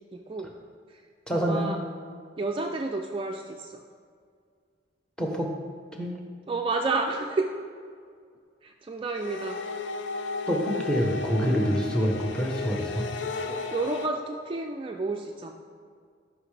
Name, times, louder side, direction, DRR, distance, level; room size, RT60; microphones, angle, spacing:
voice 1, 0.1-0.5 0.9-1.0 1.3-1.8 2.4-3.8 6.5-7.5 8.6-9.6 13.5-15.5, right 3 dB, 30° right, 2 dB, 0.3 m, -30 dB
voice 2, 1.3-1.7 5.2-5.5 5.9-6.1 10.5-13.1, equal, 5° left, 1 dB, 0.9 m, -26 dB
sound 1, 9.1-14.1, left 3 dB, 70° left, 0.5 m, -34 dB
12.0 x 5.6 x 3.3 m, 2.1 s
head